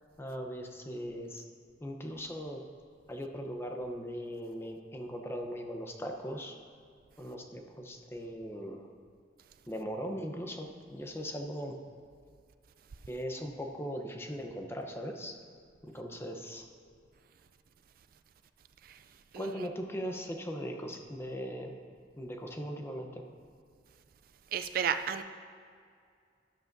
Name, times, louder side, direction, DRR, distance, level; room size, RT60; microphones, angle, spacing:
voice 1, 0.2-1.5 1.8-2.6 3.1-6.5 7.2-8.9 9.7-11.8 13.1-15.4 15.8-16.7 19.4-21.8 22.1-23.3, equal, 15° left, 3 dB, 0.8 m, -39 dB
voice 2, 19.3-19.7 24.5-25.2, right 8 dB, 50° right, 9 dB, 0.4 m, -33 dB
13.0 x 11.5 x 2.6 m, 2.3 s
head